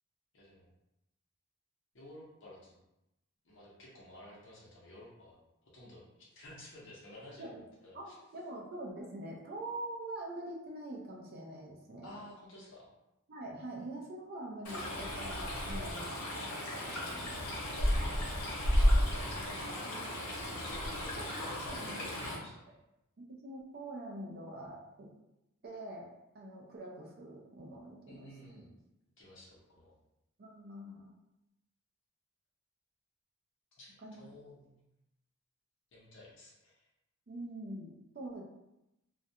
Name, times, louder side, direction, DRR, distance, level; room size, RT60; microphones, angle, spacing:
voice 1, 0.3-0.7 1.9-2.8 3.4-8.2 12.0-12.9 18.4-22.8 28.1-28.7 29.2-29.9 33.8-34.8 35.9-36.9, left 1 dB, 55° left, -5 dB, 0.7 m, -53 dB
voice 2, 7.9-12.2 13.3-17.4 19.8-20.1 21.2-21.3 21.7-22.0 23.2-25.1 25.6-26.1 26.3-28.3 28.5-28.7 30.4-31.1 34.0-34.2 37.3-38.4, right 1 dB, 45° right, -1 dB, 0.4 m, -45 dB
Stream, 14.6-22.3, equal, 85° left, 0.8 m, -33 dB
2.3 x 2.2 x 2.7 m, 0.90 s
head